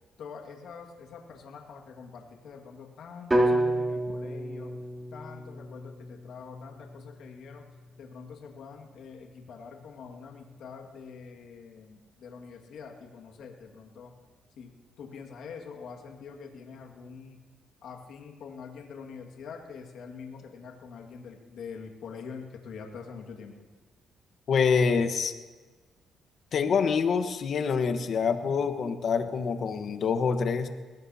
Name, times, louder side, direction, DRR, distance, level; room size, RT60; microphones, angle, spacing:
voice 1, 0.2-4.7 5.1-7.6 8.0-14.1 14.6-14.7 15.0-17.4 17.8-23.5, left 5 dB, 75° left, 1 dB, 2.0 m, -45 dB
sound 1, 3.3-7.4, right 1 dB, 20° right, 3.2 m, -29 dB
voice 2, 24.5-25.3 26.5-30.7, left 5 dB, 60° left, 7 dB, 1.3 m, -26 dB
21.5 x 18.5 x 2.9 m, 1.3 s
cardioid pair, 90°, 0 cm